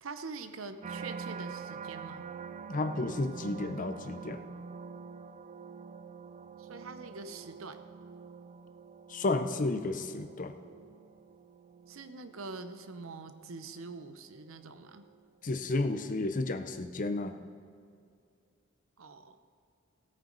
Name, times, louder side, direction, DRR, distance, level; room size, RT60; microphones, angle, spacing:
voice 1, 0.0-2.3 6.6-7.8 11.9-15.1 19.0-19.4, right 3 dB, 75° right, 9 dB, 0.8 m, -44 dB
sound 1, 0.8-16.0 16.5-17.0, right 5 dB, 35° right, 0.3 m, -46 dB
voice 2, 2.7-4.4 9.1-10.5 15.4-17.4, left 2 dB, 40° left, 8 dB, 0.6 m, -32 dB
17.0 x 8.9 x 4.0 m, 2.4 s
head